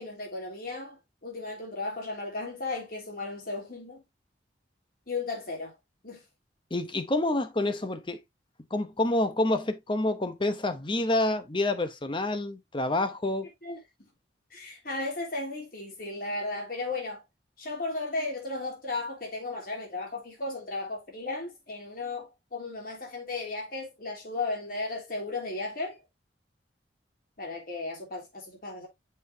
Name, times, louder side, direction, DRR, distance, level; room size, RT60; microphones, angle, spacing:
voice 1, 0.0-4.0 5.1-5.7 6.0-6.2 13.6-13.8 14.5-17.2 17.6-26.0 27.4-28.9, left 3 dB, 55° left, 3.1 m, -35 dB
voice 2, 6.7-8.2 8.7-13.5, left 2 dB, 25° left, 0.9 m, -28 dB
6.9 x 5.3 x 2.7 m
head